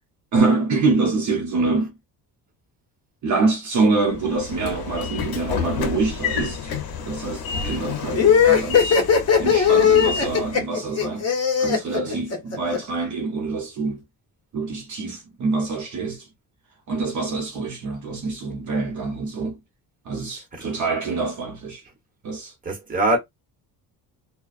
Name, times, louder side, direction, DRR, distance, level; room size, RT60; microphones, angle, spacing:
voice 1, 0.3-2.0 3.2-6.7 7.0-9.1 9.4-11.3 11.6-14.0 14.5-16.3 16.9-19.6 20.0-21.8 22.2-22.5, right 3 dB, 50° right, 0.8 m, -25 dB
Train / Sliding door, 4.1-10.6, left 5 dB, 65° left, 0.8 m, -30 dB
sound 1, 8.1-12.8, left 7 dB, 40° left, 1.1 m, -18 dB
voice 2, 22.6-23.2, right 1 dB, 20° right, 1.1 m, -25 dB
2.3 x 2.2 x 2.4 m
cardioid pair, 125°, 39 cm